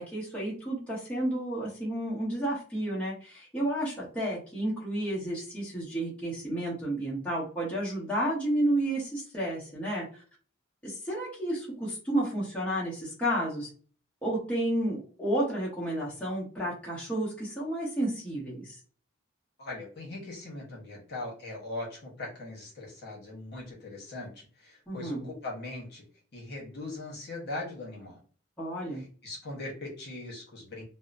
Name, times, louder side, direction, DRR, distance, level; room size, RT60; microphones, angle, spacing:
voice 1, 0.0-10.2 10.8-13.7 14.2-18.8 24.9-25.3 28.6-29.0, right 1 dB, 5° left, -8 dB, 0.8 m, -31 dB
voice 2, 19.6-26.0 26.3-28.2 28.9-30.8, left 2 dB, 50° left, -3 dB, 1.0 m, -40 dB
2.7 x 2.0 x 2.5 m, 0.41 s
head